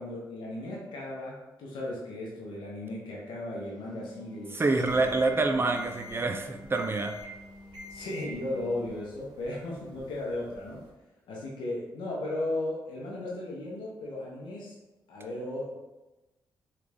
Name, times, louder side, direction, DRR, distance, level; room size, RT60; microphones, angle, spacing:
voice 1, 0.0-4.6 5.0-5.1 7.9-10.8 11.3-14.8 15.1-15.7, left 1 dB, 85° left, -4 dB, 0.8 m, -36 dB
Wind instrument woodwind instrument, 3.8-9.1, left 2 dB, 5° left, 0.8 m, -51 dB
voice 2, 4.5-7.2, right 3 dB, 30° right, 5 dB, 0.4 m, -27 dB
sound 1, 4.8-10.9, left 1 dB, 65° right, 1.0 m, -48 dB
3.3 x 2.4 x 3.4 m, 1.1 s
cardioid pair, 60°, 8 cm